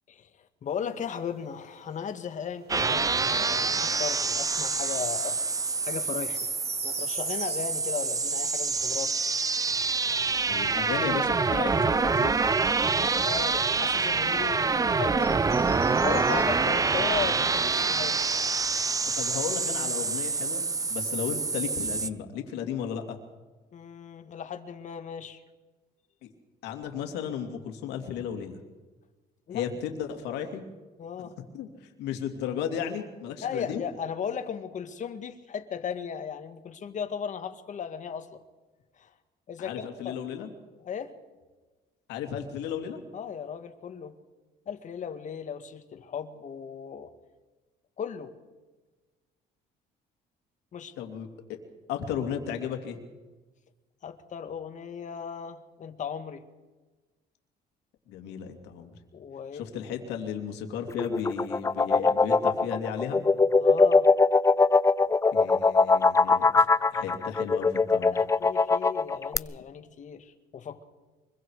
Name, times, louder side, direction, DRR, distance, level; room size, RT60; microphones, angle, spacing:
voice 1, 0.1-5.4 5.8-6.5 6.8-9.2 12.8-15.5 16.0-18.2 23.7-25.4 29.5-29.7 31.0-31.3 33.4-38.4 39.0-39.1 39.5-40.2 40.8-41.1 43.1-44.1 44.7-47.1 48.0-48.3 50.7-50.9 54.0-56.4 59.1-59.7 63.6-64.1 66.6-66.7 68.0-70.8, left 7 dB, 45° left, 8 dB, 1.9 m, -36 dB
sound 1, 0.7-19.7, right 3 dB, 40° right, 5.1 m, -51 dB
sound 2, 2.7-22.1, right 4 dB, 20° right, 0.7 m, -26 dB
voice 2, 10.5-12.3 19.0-20.6 20.9-23.2 26.2-26.3 26.6-28.6 29.5-30.6 31.2-31.3 31.5-33.8 39.6-40.5 42.1-43.0 51.0-51.3 51.9-53.0 58.1-58.9 59.5-63.2 65.3-66.5 66.9-68.2, left 8 dB, 90° left, 5 dB, 2.8 m, -34 dB
sound 3, 60.9-69.4, left 4 dB, 20° left, 0.5 m, -21 dB
24.5 x 22.5 x 4.9 m, 1.2 s
cardioid pair, 110°, 17 cm